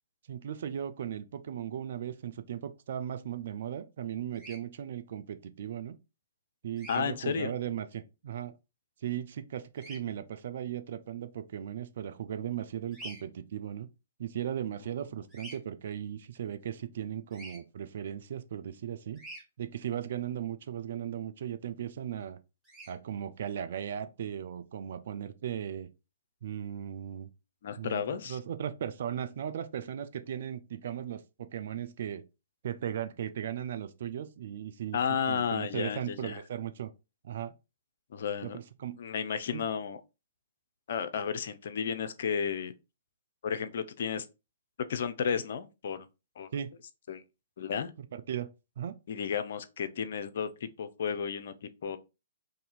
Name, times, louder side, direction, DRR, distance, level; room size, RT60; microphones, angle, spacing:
voice 1, 0.3-5.9 6.6-8.5 9.0-13.9 14.2-19.2 19.6-22.4 22.9-25.9 26.4-27.3 27.8-32.2 32.6-35.0 35.3-36.9 37.2-37.5 38.4-39.0 39.5-39.6 46.5-46.7 48.1-48.5 48.8-48.9, right 10 dB, 60° right, 0.4 m, -37 dB
Bird vocalization bird call bird song, 4.3-4.6 6.8-7.0 9.8-10.0 12.9-13.2 15.3-15.6 17.3-17.6 19.2-19.4 22.6-22.9, right 1 dB, 10° right, 1.6 m, -46 dB
voice 2, 6.9-7.5 27.6-28.4 34.9-36.4 38.1-38.6 39.0-40.0 40.9-42.7 43.4-44.3 44.9-46.1 46.4-46.5 47.1-47.2 47.6-47.9 49.1-52.0, left 7 dB, 60° left, 0.5 m, -33 dB
2.7 x 2.7 x 4.0 m
figure-of-eight pair, 125°, 0 cm